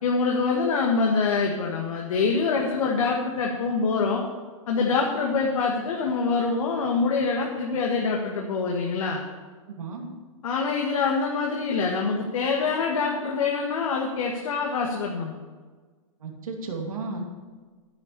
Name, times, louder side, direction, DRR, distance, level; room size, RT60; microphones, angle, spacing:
voice 1, 0.0-4.2 4.7-9.2 10.4-15.3, left 4 dB, 75° left, -1 dB, 1.9 m, -25 dB
voice 2, 9.7-10.1 16.2-17.2, right 3 dB, 85° right, 1 dB, 2.6 m, -33 dB
10.5 x 9.6 x 6.9 m, 1.4 s
hypercardioid pair, 135°, 17 cm